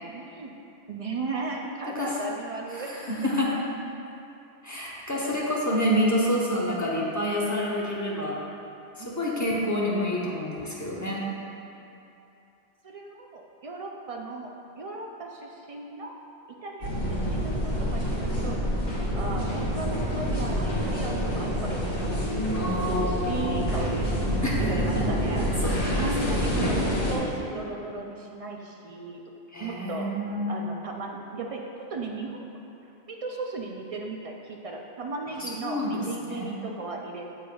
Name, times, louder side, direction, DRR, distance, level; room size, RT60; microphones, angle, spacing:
voice 1, 0.1-0.5 0.9-2.9 9.0-9.1 12.8-16.2 16.6-18.6 19.1-22.3 22.9-24.1 24.6-25.5 26.0-29.2 29.6-30.1 30.5-32.5 33.1-37.2, right 3 dB, 60° right, 0 dB, 0.3 m, -36 dB
voice 2, 2.7-3.5 4.6-8.4 9.0-11.2 22.5-23.7 24.4-24.9 25.6-26.4 29.5-30.6 35.3-36.5, left 1 dB, 15° left, -5 dB, 0.8 m, -28 dB
sound 1, 16.8-27.2, equal, 60° left, 1.6 m, -27 dB
7.3 x 7.1 x 2.3 m, 2.8 s
omnidirectional pair, 1.1 m